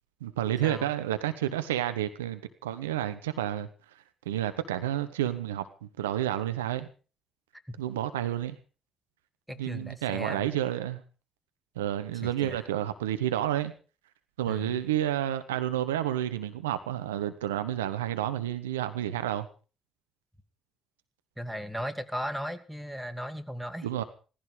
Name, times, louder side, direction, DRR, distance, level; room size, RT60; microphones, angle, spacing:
voice 1, 0.2-3.7 4.3-6.9 7.8-8.6 9.6-11.0 11.8-13.7 14.4-19.5 23.8-24.0, right 12 dB, 85° right, 11 dB, 1.0 m, -30 dB
voice 2, 9.5-10.5 12.1-12.7 14.5-14.8 21.4-23.9, equal, 5° right, 9 dB, 2.5 m, -37 dB
17.5 x 15.0 x 5.1 m, 0.37 s
hypercardioid pair, 45°, 0 cm